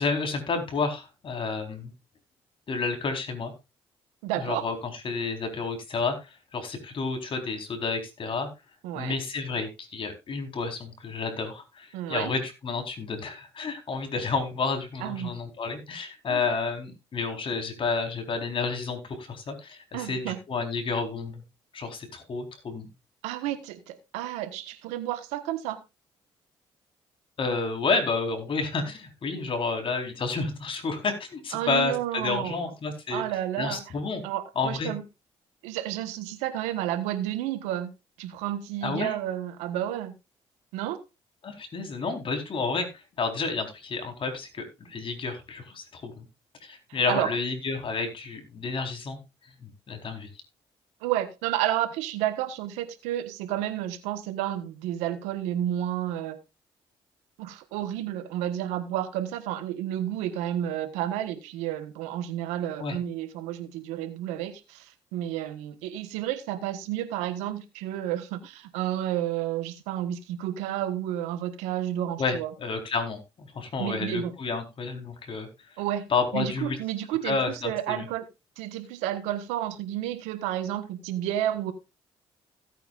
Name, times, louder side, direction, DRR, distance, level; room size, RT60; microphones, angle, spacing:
voice 1, 0.0-1.9 2.7-3.5 4.4-4.7 5.0-8.5 8.9-21.4 21.7-22.9 27.4-33.2 33.6-34.2 34.6-34.9 38.8-39.1 41.4-46.2 46.6-49.2 49.6-50.3 62.8-63.0 72.2-75.5 76.1-76.8 77.2-78.0, left 4 dB, 50° left, 4.2 m, -30 dB
voice 2, 4.2-4.7 8.8-9.2 11.9-12.3 15.0-15.3 16.3-16.4 19.9-20.4 23.2-25.8 31.5-32.6 33.1-33.8 34.2-35.0 35.6-37.9 38.2-40.1 40.7-41.0 46.9-47.3 51.0-56.4 57.4-72.5 73.8-74.3 75.8-76.1 76.3-78.2 78.6-81.7, right 12 dB, 90° right, 1.4 m, -31 dB
16.5 x 9.1 x 2.5 m
supercardioid pair, 60°, 11 cm